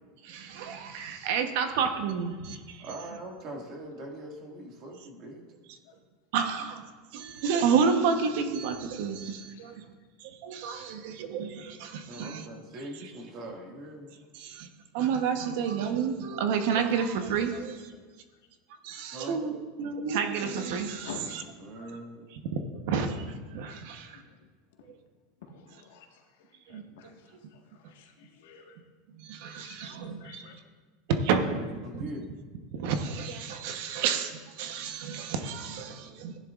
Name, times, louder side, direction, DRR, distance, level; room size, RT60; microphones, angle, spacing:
voice 1, 0.2-2.8 6.3-6.8 7.1-9.8 10.2-12.5 14.3-14.7 14.9-17.9 18.8-21.1 21.8-21.9 22.3-24.2 26.7-26.8 29.2-30.6 31.1-31.6 31.9-32.1 32.7-36.4, right 6 dB, 65° right, 6 dB, 1.0 m, -30 dB
voice 2, 2.8-5.4 12.1-14.1 19.1-19.4 21.6-22.2 31.7-32.3, right 1 dB, 40° right, 1 dB, 2.0 m, -41 dB
voice 3, 9.4-9.8 10.7-11.0 17.9-18.4 21.0-21.4 24.0-24.4 24.8-24.9 25.4-28.8 29.5-30.5, left 5 dB, 85° left, 1 dB, 1.6 m, -50 dB
15.5 x 10.5 x 2.5 m, 1.4 s
supercardioid pair, 155°, 0 cm